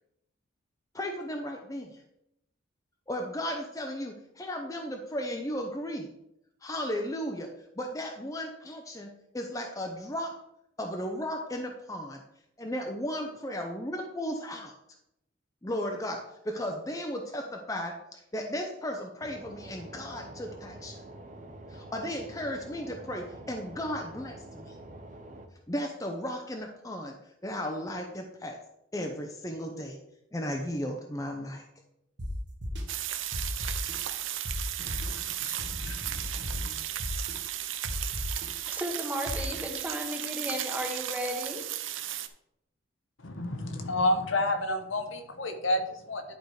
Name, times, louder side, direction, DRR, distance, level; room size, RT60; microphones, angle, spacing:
voice 1, 0.9-2.0 3.1-6.1 6.6-7.5 7.8-10.3 10.8-12.2 12.6-14.7 15.6-21.0 21.7-24.7 25.7-27.2 27.4-28.6 28.9-30.0 30.3-31.6, equal, 15° left, 2 dB, 0.7 m, -35 dB
sound 1, 19.2-25.5, right 1 dB, 40° right, 0.8 m, -46 dB
sound 2, 32.2-32.3 32.6-32.8 33.3-33.9 34.4-34.5 34.9-35.1 35.6-36.5 37.0-37.3 37.8-38.5 39.3-39.6, equal, 60° right, 1.5 m, -36 dB
sound 3, 32.9-42.3, right 12 dB, 75° right, 0.7 m, -35 dB
voice 2, 34.8-36.7 43.2-46.2, left 1 dB, 75° left, 6 dB, 1.2 m, -31 dB
voice 3, 38.7-41.6, equal, 10° right, 2 dB, 1.1 m, -34 dB
10.5 x 4.8 x 4.8 m, 0.82 s
head